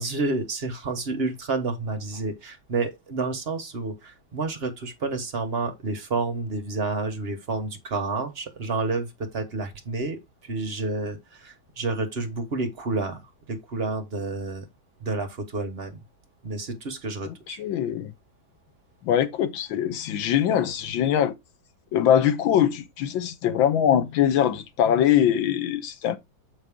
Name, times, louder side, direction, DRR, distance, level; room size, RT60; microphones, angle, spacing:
voice 1, 0.0-13.2 13.5-14.7 15.0-16.0 16.4-17.6, right 3 dB, 40° right, 1.1 m, -30 dB
voice 2, 17.3-18.1 19.0-21.4 21.9-26.2, left 10 dB, 90° left, 1.6 m, -22 dB
7.2 x 5.7 x 3.5 m
omnidirectional pair, 2.1 m